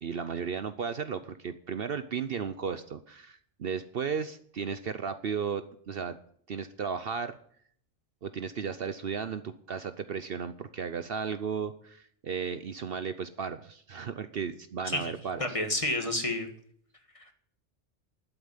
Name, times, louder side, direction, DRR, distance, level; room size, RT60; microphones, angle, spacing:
voice 1, 0.0-6.2 6.5-7.4 8.2-15.4, right 6 dB, 55° right, 11 dB, 0.9 m, -35 dB
voice 2, 15.4-16.5, left 1 dB, 30° left, 5 dB, 1.9 m, -29 dB
12.0 x 8.5 x 9.8 m, 0.62 s
omnidirectional pair, 1.2 m